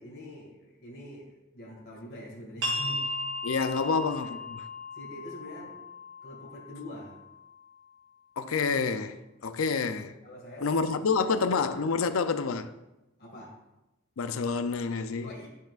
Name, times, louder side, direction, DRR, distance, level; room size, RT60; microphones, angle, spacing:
voice 1, 0.0-3.0 3.8-4.4 4.9-5.8 6.2-7.2 10.2-11.1 13.2-13.5 15.2-15.5, equal, 50° left, 2.0 m, -44 dB
sound 1, 2.6-8.0, left 1 dB, 65° right, 2.6 m, -37 dB
voice 2, 3.4-4.6 8.4-10.1 10.6-12.7 14.2-15.3, left 4 dB, 90° left, 0.5 m, -28 dB
12.0 x 5.8 x 2.4 m
head